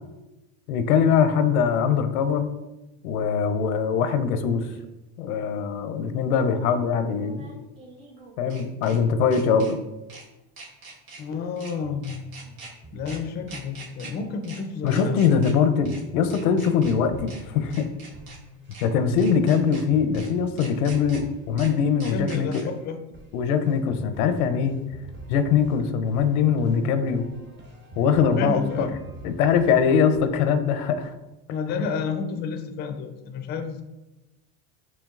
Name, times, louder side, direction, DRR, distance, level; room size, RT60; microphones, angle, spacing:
voice 1, 0.7-2.5 3.0-4.7 5.2-7.5 8.4-9.8 14.8-17.9 18.8-22.5 23.3-24.8 25.3-27.2 28.0-28.9 29.2-31.1, left 6 dB, 85° left, 9 dB, 0.6 m, -22 dB
sound 1, 4.7-4.8 7.1-9.0 9.3-9.7 10.1-10.2 10.6-11.2 11.6-11.7 12.0-12.7 13.1-13.2 13.5-14.1 14.4-14.6 14.9-15.5 15.8-16.0 16.3-16.9 17.3-17.4 17.7-18.4 18.7-18.8 19.2-19.8 20.1-20.3 20.6-21.2 21.6-21.7 22.0-22.6, right 3 dB, 90° right, 1.4 m, -43 dB
voice 2, 11.2-12.2 12.9-15.4 22.1-23.0 28.4-28.9 31.5-33.8, left 5 dB, 25° left, 7 dB, 0.3 m, -30 dB
sound 2, 11.8-14.9 15.8-30.5, right 1 dB, 25° right, 0.7 m, -45 dB
5.2 x 2.8 x 2.4 m, 1.0 s
supercardioid pair, 105°, 42 cm